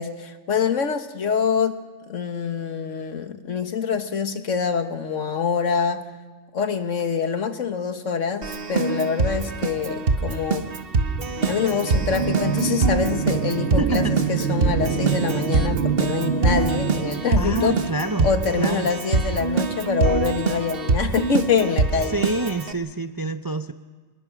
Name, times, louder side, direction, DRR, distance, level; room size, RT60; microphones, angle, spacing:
voice 1, 0.0-1.8 2.1-6.0 6.5-10.7 11.4-17.8 18.2-22.2, left 6 dB, 80° left, 8 dB, 1.7 m, -25 dB
Keyboard (musical), 8.4-22.7, right 4 dB, 50° right, 1.4 m, -24 dB
sound 1, 10.9-18.6, right 7 dB, 65° right, 1.3 m, -28 dB
voice 2, 13.8-14.1 17.4-18.3 18.6-18.9 22.1-23.7, right 2 dB, 25° right, 9 dB, 0.5 m, -27 dB
26.5 x 20.5 x 6.0 m, 1.4 s
omnidirectional pair, 1.3 m